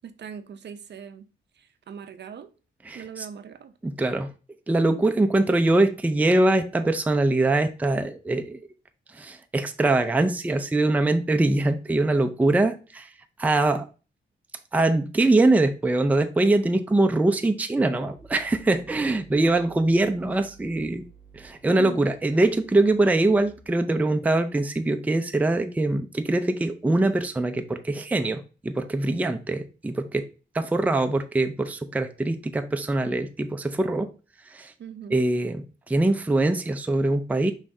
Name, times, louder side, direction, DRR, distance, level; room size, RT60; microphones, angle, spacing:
voice 1, 0.0-1.3 1.5-2.5 2.9-3.7 21.8-22.0 34.8-35.2, right 7 dB, 60° right, 0.5 m, -40 dB
voice 2, 2.9-3.2 3.8-4.3 4.7-8.6 9.1-13.1 13.4-13.9 14.7-21.0 21.3-30.3 30.5-34.1 34.5-34.7 35.1-37.5, right 2 dB, 10° right, 0.4 m, -23 dB
sound 1, 18.0-24.0, right 5 dB, 15° left, 2.2 m, -54 dB
5.5 x 3.1 x 2.6 m
cardioid pair, 90°, 20 cm